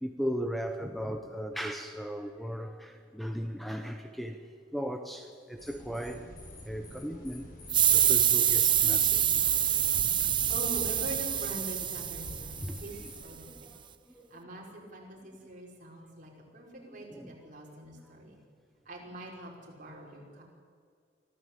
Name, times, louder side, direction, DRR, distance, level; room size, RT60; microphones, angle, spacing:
voice 1, 0.0-6.3 6.6-9.6 9.9-10.0 12.6-13.1 13.4-13.8 14.1-14.4 16.7-17.4, equal, ahead, 1.0 m, -37 dB
sound 1, 5.6-13.2, left 1 dB, 55° left, 7.3 m, -48 dB
sound 2, 7.7-13.0, right 9 dB, 25° right, 0.7 m, -26 dB
voice 2, 10.2-12.9 13.2-13.7 14.3-18.4 18.9-20.4, right 1 dB, 50° right, 5.7 m, -43 dB
24.5 x 15.0 x 8.5 m
head